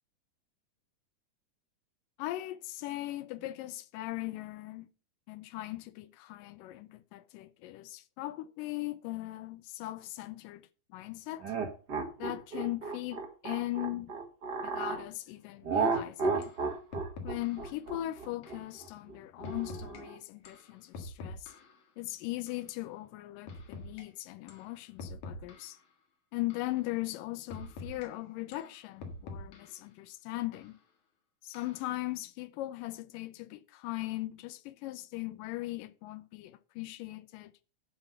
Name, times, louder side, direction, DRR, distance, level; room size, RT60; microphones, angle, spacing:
voice 1, 2.2-4.9 5.3-10.6 10.9-11.5 12.2-14.1 14.6-16.5 17.2-21.5 22.0-25.8 26.3-30.8 31.4-37.5, left 17 dB, 80° left, 2.0 m, -39 dB
sound 1, 11.4-15.0 15.6-20.2, right 4 dB, 85° right, 0.9 m, -33 dB
sound 2, 15.9-16.0 16.4-16.6 16.9-17.7 18.4-18.7 19.4-20.0 20.4-21.8 22.5-22.7 23.5-24.0 24.5-24.7 25.0-25.8 26.5-26.8 27.5-28.1 28.5-29.8 30.5-30.7 31.5-31.9, left 2 dB, 60° left, 2.9 m, -45 dB
11.5 x 3.9 x 7.7 m
omnidirectional pair, 4.3 m